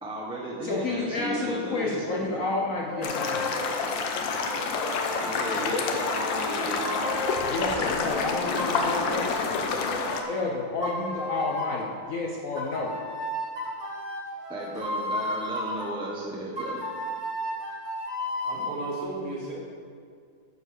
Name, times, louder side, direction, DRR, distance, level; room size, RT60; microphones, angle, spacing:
voice 1, 0.0-2.4 5.2-7.3 14.5-16.8, right 1 dB, 5° right, -4 dB, 0.7 m, -34 dB
voice 2, 0.6-3.8 7.5-9.6 10.1-13.0, left 3 dB, 55° left, -2 dB, 1.0 m, -30 dB
sound 1, 2.9-3.9 4.5-7.9 8.6-10.4 10.8-11.9 12.6-15.9 16.6-18.8, left 1 dB, 25° right, 1.5 m, -34 dB
sound 2, 3.0-10.2, left 4 dB, 80° left, 1.5 m, -28 dB
voice 3, 18.4-19.5, right 2 dB, 50° right, -5 dB, 2.4 m, -34 dB
9.8 x 4.7 x 6.5 m, 2.1 s
omnidirectional pair, 2.0 m